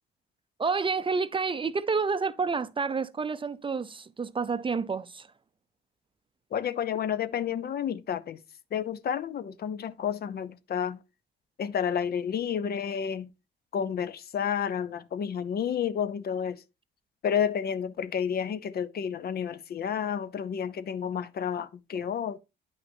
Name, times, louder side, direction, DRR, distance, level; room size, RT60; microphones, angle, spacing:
voice 1, 0.6-5.3, right 5 dB, 25° right, 0.5 m, -29 dB
voice 2, 6.5-8.4 8.7-11.0 11.6-13.3 13.7-16.6 17.2-22.4, left 8 dB, 50° left, 0.6 m, -30 dB
9.3 x 5.6 x 2.6 m
cardioid pair, 90°, 20 cm